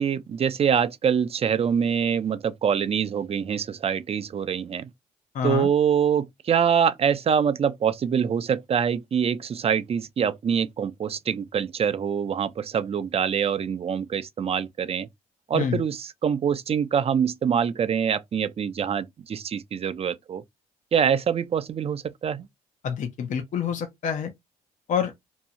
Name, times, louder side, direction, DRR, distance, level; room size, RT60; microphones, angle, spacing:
voice 1, 0.0-4.9 5.4-15.1 15.5-20.4 20.9-22.4, right 7 dB, 40° right, 0.4 m, -25 dB
voice 2, 5.3-5.7 15.5-15.8 22.8-24.3 24.9-25.1, left 7 dB, 60° left, 0.6 m, -27 dB
2.7 x 2.3 x 2.8 m
supercardioid pair, 70°, 15 cm